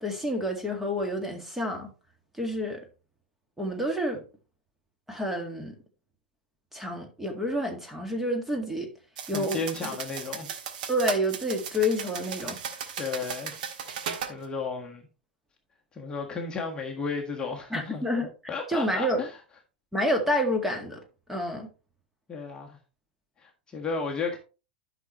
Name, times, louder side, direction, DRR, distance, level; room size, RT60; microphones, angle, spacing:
voice 1, 0.0-1.9 2.3-2.9 3.6-4.2 5.1-5.8 6.7-8.9 9.3-9.6 10.9-12.6 17.7-18.3 18.7-19.2 19.9-21.0 21.3-21.7, equal, 5° right, 1.9 m, -28 dB
sound 1, 9.2-14.3, right 7 dB, 55° right, 1.5 m, -36 dB
voice 2, 9.3-10.6 13.0-13.5 14.3-15.0 15.9-18.0 18.5-19.3 22.3-22.8 23.4-24.4, left 4 dB, 15° left, 1.5 m, -33 dB
12.5 x 6.0 x 3.1 m
figure-of-eight pair, 95°, 5 cm